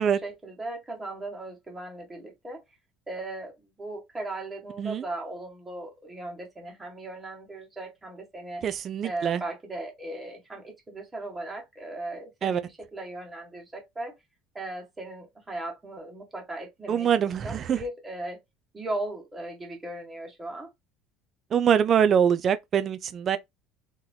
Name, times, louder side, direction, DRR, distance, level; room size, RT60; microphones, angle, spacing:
voice 1, 0.0-2.6 3.1-8.6 9.0-14.1 14.5-18.4 18.7-20.7, right 2 dB, 15° right, 1.7 m, -37 dB
voice 2, 8.6-9.4 12.4-12.6 16.9-17.8 21.5-23.4, right 8 dB, 40° right, 0.4 m, -24 dB
3.9 x 3.0 x 2.7 m
cardioid pair, 125°, 0 cm